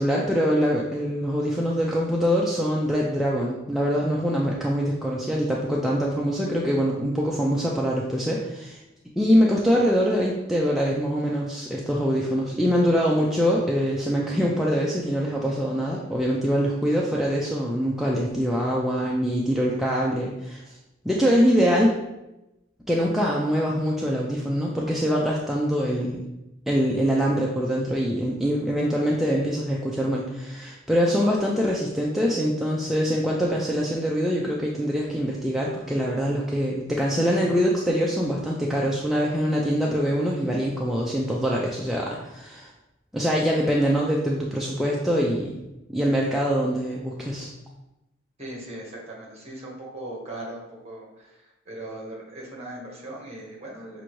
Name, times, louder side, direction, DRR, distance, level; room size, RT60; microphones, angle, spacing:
voice 1, 0.0-8.8 9.2-20.6 21.0-22.0 22.9-26.2 26.7-42.7 43.1-45.6 45.9-47.5, equal, ahead, -4 dB, 0.3 m, -24 dB
voice 2, 48.4-54.0, right 1 dB, 35° right, -3 dB, 1.2 m, -39 dB
5.7 x 2.6 x 3.0 m, 0.95 s
head